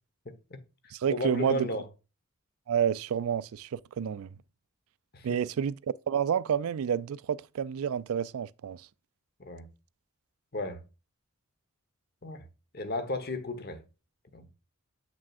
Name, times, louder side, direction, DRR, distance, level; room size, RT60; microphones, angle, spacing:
voice 1, 0.2-0.6 1.1-1.8 5.1-5.4 9.4-9.7 10.5-10.8 12.2-12.4 12.7-13.8 14.3-14.4, left 1 dB, 45° left, 1.1 m, -34 dB
voice 2, 0.9-1.7 2.7-4.3 5.2-8.8, right 8 dB, 80° right, 0.3 m, -29 dB
7.5 x 6.0 x 2.5 m
head